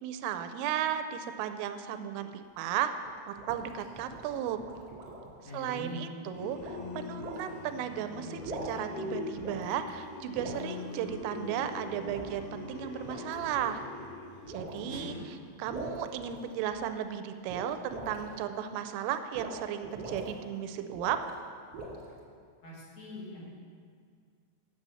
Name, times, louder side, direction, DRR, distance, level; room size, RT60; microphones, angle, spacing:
voice 1, 0.0-2.9 3.3-4.6 5.5-13.8 14.5-21.2, right 10 dB, 85° right, 9 dB, 3.1 m, -35 dB
sound 1, 3.0-5.4 6.6-6.8 7.2-7.4 8.3-8.9 9.4-9.9 10.4-10.7 12.0-12.3 12.9-13.7 14.5-14.8 15.7-16.8 17.5-18.4 19.3-19.6 19.8-20.3 20.9-21.3 21.7-22.2, right 2 dB, 50° right, 2.0 m, -42 dB
voice 2, 5.4-6.1 14.8-15.2 22.6-23.4, left 1 dB, 50° left, -6 dB, 2.5 m, -42 dB
sound 2, 6.3-15.2, left 3 dB, 75° left, 1.8 m, -42 dB
9.6 x 7.7 x 6.9 m, 2.1 s
omnidirectional pair, 5.9 m